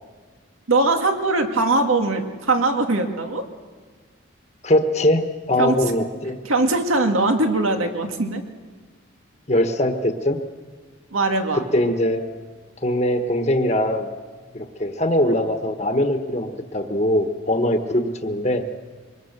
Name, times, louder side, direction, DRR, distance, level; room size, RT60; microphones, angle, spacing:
voice 1, 0.7-3.4 5.6-5.8 6.4-8.4 11.1-11.7, right 2 dB, 85° right, 4 dB, 2.1 m, -21 dB
voice 2, 4.6-5.2 5.5-6.4 9.5-10.4 11.5-12.2 12.8-14.1 14.5-18.6, left 1 dB, 35° left, 5 dB, 1.2 m, -21 dB
24.5 x 21.0 x 6.7 m, 1.5 s
head